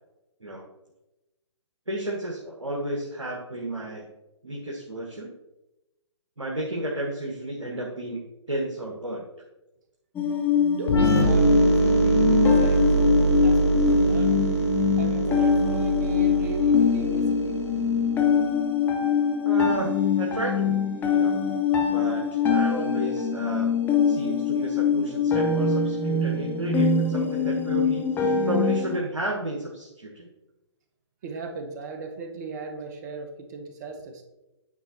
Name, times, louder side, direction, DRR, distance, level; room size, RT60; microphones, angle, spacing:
voice 1, 1.9-4.1 4.4-5.3 6.4-9.2 19.4-20.8 21.1-21.4 21.9-23.7 24.0-30.3, right 1 dB, 85° right, -1 dB, 1.3 m, -32 dB
sound 1, 10.2-29.0, left 6 dB, 10° left, 0.7 m, -24 dB
voice 2, 10.7-12.9 13.4-14.3 15.0-17.6 21.5-21.6 31.2-34.2, right 4 dB, 35° right, 5 dB, 1.2 m, -37 dB
sound 2, 10.9-18.5, right 2 dB, 60° left, 1.2 m, -23 dB
8.9 x 4.4 x 4.3 m, 0.98 s
figure-of-eight pair, 130°, 15 cm